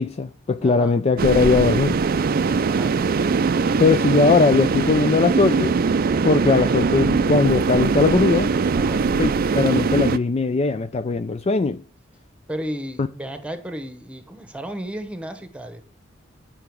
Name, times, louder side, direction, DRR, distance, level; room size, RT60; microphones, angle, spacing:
voice 1, 0.0-2.0 3.8-5.8 6.2-8.5 9.2-11.8, left 4 dB, 35° left, 0.4 m, -19 dB
voice 2, 0.6-1.0 2.5-3.0 8.7-9.1 12.5-15.8, right 1 dB, 5° right, 1.1 m, -34 dB
sound 1, 1.2-10.2, right 4 dB, 50° right, 0.4 m, -21 dB
8.9 x 5.8 x 4.6 m
head